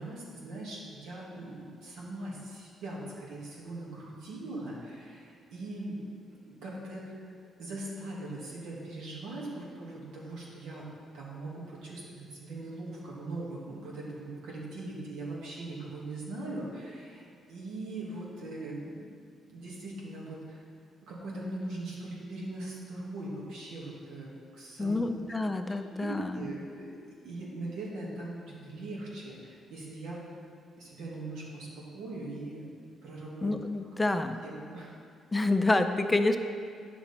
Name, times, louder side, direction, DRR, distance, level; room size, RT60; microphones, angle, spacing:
voice 1, 0.0-6.0 6.4-7.2 7.6-10.9 11.1-19.0 19.5-20.6 21.0-25.4 25.7-27.0 27.2-30.2 30.8-32.6 33.0-33.5 34.4-34.9, right 2 dB, 85° right, -4 dB, 1.9 m, -40 dB
voice 2, 24.8-26.5 33.4-34.4 35.3-36.4, left 2 dB, 15° left, 8 dB, 0.4 m, -28 dB
8.7 x 6.0 x 4.2 m, 2.3 s
cardioid pair, 90°, 0 cm